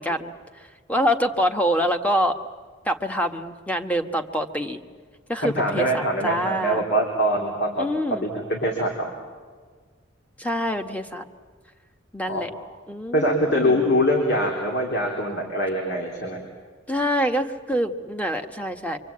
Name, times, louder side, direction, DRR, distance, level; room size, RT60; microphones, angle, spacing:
voice 1, 0.0-2.4 2.8-4.8 5.3-6.8 7.8-8.3 10.4-11.2 12.1-12.5 12.9-14.0 16.9-19.0, equal, 10° left, 6 dB, 1.4 m, -26 dB
voice 2, 5.4-7.8 8.2-9.1 12.3-12.4 13.1-16.4, equal, 60° left, 0 dB, 3.9 m, -23 dB
26.5 x 25.0 x 8.7 m, 1.5 s
head